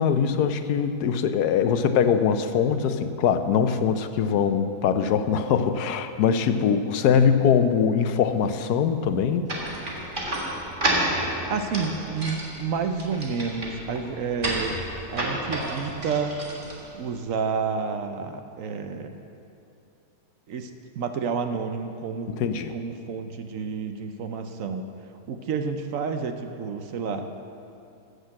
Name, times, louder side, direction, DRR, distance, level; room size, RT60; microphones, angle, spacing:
voice 1, 0.0-9.5 22.4-22.7, left 7 dB, 80° left, 9 dB, 1.2 m, -22 dB
sound 1, 9.5-17.1, right 1 dB, 30° right, 1.8 m, -31 dB
voice 2, 11.5-14.7 15.1-16.3 16.9-19.1 20.5-20.7 20.9-22.4 22.7-24.8 25.3-27.3, right 5 dB, 65° right, 7 dB, 1.0 m, -30 dB
14.5 x 6.6 x 7.5 m, 2.7 s
omnidirectional pair, 1.7 m